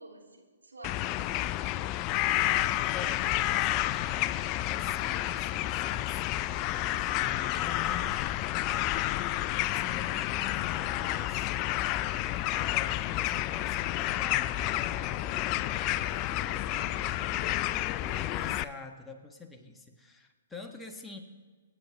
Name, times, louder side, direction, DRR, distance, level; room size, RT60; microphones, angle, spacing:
voice 1, 0.0-1.6 6.8-7.9 16.1-17.7, right 2 dB, 85° right, -1 dB, 3.4 m, -52 dB
sound 1, 0.8-18.6, left 14 dB, 30° left, 0.4 m, -30 dB
voice 2, 2.9-8.4 9.2-11.7 12.2-16.5 18.0-21.2, left 4 dB, 5° left, 2 dB, 1.5 m, -46 dB
25.5 x 9.8 x 3.5 m, 1.5 s
figure-of-eight pair, 125°, 0 cm